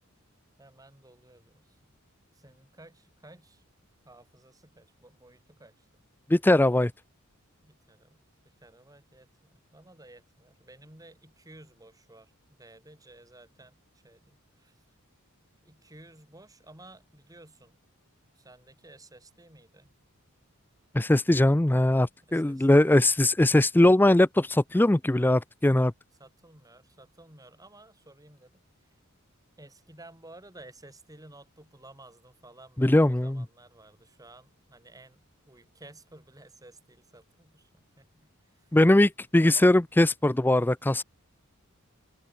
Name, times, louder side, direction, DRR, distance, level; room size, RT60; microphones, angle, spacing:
voice 1, 0.6-1.8 2.3-3.6 4.0-6.0 7.6-14.8 15.6-17.8 18.3-19.9 22.3-23.0 26.2-28.6 28.9-29.0 29.6-38.8 39.4-40.1, right 2 dB, 15° right, 3.9 m, -54 dB
voice 2, 6.3-6.9 20.9-25.9 32.8-33.4 38.7-41.0, left 1 dB, 10° left, 0.4 m, -21 dB
head